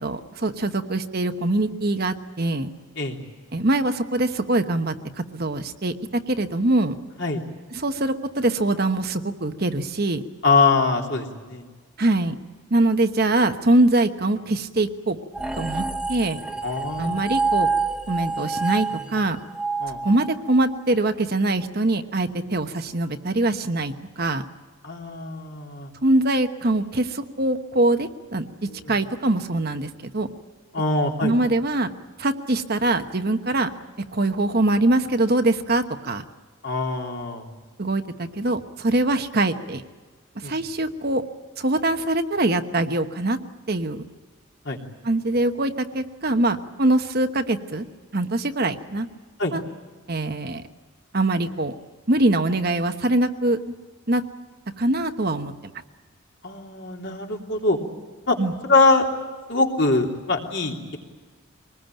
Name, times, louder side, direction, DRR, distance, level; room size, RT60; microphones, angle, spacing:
voice 1, 0.0-2.7 3.5-5.9 6.3-7.0 7.7-10.2 12.0-12.4 12.7-15.2 15.6-16.4 17.0-17.7 18.1-19.4 20.0-24.4 26.0-28.5 28.9-30.3 31.2-31.9 32.2-33.7 34.1-36.2 37.8-39.8 40.3-41.2 41.6-43.4 43.7-44.0 45.0-47.9 48.1-49.1 49.5-49.6 50.1-50.6 51.1-51.7 52.1-53.6 54.1-54.2 54.8-55.5 58.4-58.5, right 2 dB, 45° right, 7 dB, 1.1 m, -23 dB
voice 2, 10.4-11.6 16.6-17.4 19.8-20.0 24.8-25.9 28.8-28.9 30.7-31.3 36.6-37.4 40.4-40.5 44.6-44.8 49.4-49.5 56.4-57.8 58.3-58.4 58.6-59.0 59.5-61.0, left 3 dB, 55° left, 1 dB, 3.3 m, -23 dB
sound 1, 15.3-20.8, right 4 dB, 5° right, 0.9 m, -27 dB
24.5 x 20.0 x 9.2 m, 1.4 s
head